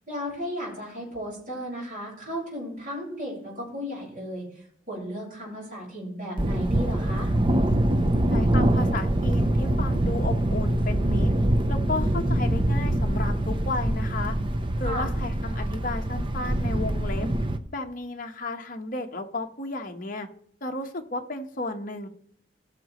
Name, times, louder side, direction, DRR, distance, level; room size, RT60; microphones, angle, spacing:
voice 1, 0.0-7.3 14.8-15.1, equal, 45° right, -6 dB, 5.2 m, -35 dB
Thunder, 6.4-17.6, right 1 dB, 25° right, 0.6 m, -24 dB
voice 2, 8.3-11.3 11.7-14.4 14.8-17.3 17.7-20.3 20.6-22.1, left 2 dB, 45° left, 4 dB, 1.1 m, -33 dB
19.5 x 6.6 x 3.1 m, 0.65 s
head